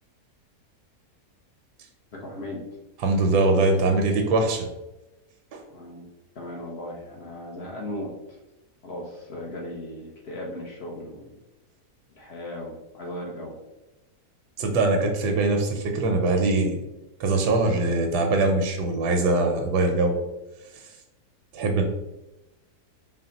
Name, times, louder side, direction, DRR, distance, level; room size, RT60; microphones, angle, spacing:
voice 1, 2.1-2.7 5.7-6.1 6.3-8.4 8.8-11.4 12.1-13.6, left 1 dB, 55° left, -2 dB, 0.7 m, -37 dB
voice 2, 3.0-4.7 5.5-5.6 14.6-16.8 17.2-20.2 21.5-21.8, right 2 dB, 85° right, 3 dB, 1.2 m, -22 dB
4.1 x 2.1 x 3.9 m, 0.99 s
omnidirectional pair, 1.7 m